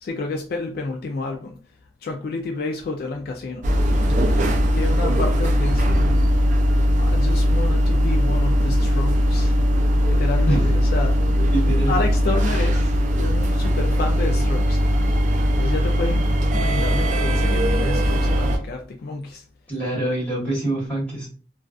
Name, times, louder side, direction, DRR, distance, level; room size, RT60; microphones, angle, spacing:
voice 1, 0.0-1.6 2.0-3.7 4.1-4.4 4.7-6.1 6.7-9.7 10.1-11.2 11.9-14.8 15.6-19.4, left 3 dB, 55° left, 0.3 m, -30 dB
sound 1, 3.6-18.6, equal, 45° right, 0.4 m, -19 dB
voice 2, 11.5-12.0 19.7-21.3, right 1 dB, 10° left, 1.4 m, -25 dB
2.3 x 2.3 x 2.4 m
head